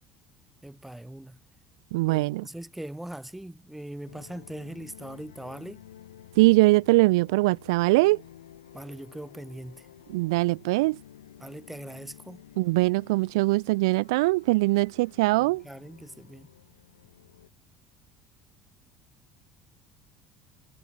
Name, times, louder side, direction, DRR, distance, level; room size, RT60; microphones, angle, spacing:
voice 1, 0.6-1.4 2.1-5.8 8.7-9.9 11.4-12.4 15.4-16.5, right 1 dB, 5° right, 1.6 m, -41 dB
voice 2, 1.9-2.4 6.4-8.2 10.1-11.0 12.6-15.6, right 22 dB, 65° right, 0.3 m, -22 dB
sound 1, 4.1-17.5, left 11 dB, 70° left, 4.2 m, -52 dB
figure-of-eight pair, 60°, 3 cm